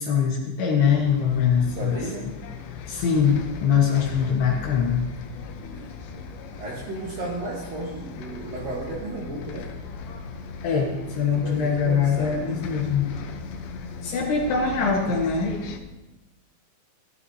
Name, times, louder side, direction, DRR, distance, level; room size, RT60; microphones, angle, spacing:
voice 1, 0.0-2.0 2.7-5.0 10.6-13.2 14.0-15.5, left 6 dB, 65° left, -1 dB, 2.9 m, -23 dB
Bus, 0.9-15.8, left 5 dB, 90° left, 2.1 m, -38 dB
voice 2, 1.6-2.3 5.7-6.0 6.6-9.8 11.2-12.5, right 2 dB, 65° right, -3 dB, 2.4 m, -34 dB
14.0 x 13.0 x 2.8 m, 1.1 s
omnidirectional pair, 5.6 m